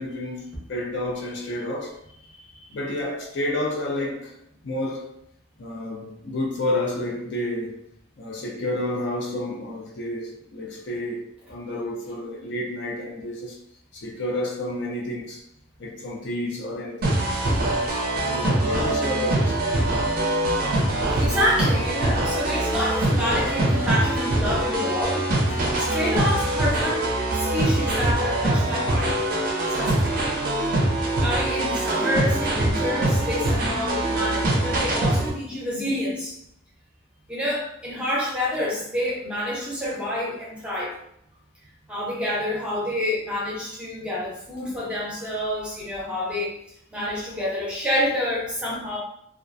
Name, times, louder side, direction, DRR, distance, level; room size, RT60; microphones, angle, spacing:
voice 1, 0.0-2.0 2.7-4.4 4.6-5.1 5.6-7.8 8.2-13.6 13.9-15.4 15.8-17.5 18.2-19.6, left 1 dB, 60° left, 0.5 m, -30 dB
voice 2, 2.3-2.7 21.2-29.2 29.8-30.4 31.2-36.4 37.3-41.0 41.9-46.6 46.9-49.0, left 1 dB, 5° right, 0.6 m, -28 dB
sound 1, 17.0-35.3, right 1 dB, 45° right, 0.4 m, -23 dB
2.4 x 2.1 x 2.5 m
head